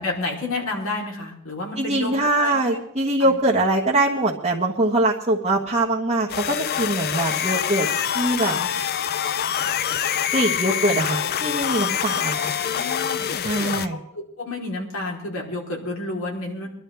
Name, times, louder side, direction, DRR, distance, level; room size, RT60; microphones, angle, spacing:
voice 1, 0.0-2.8 3.2-3.4 8.6-8.7 12.2-13.3 13.9-16.7, left 2 dB, 70° left, -1 dB, 3.8 m, -31 dB
voice 2, 1.8-7.9 8.1-8.5 10.3-12.5 13.4-14.0, right 1 dB, 35° right, -3 dB, 1.4 m, -22 dB
sound 1, 6.3-13.9, left 9 dB, 45° left, 0.5 m, -25 dB
23.5 x 12.0 x 3.5 m, 0.74 s
head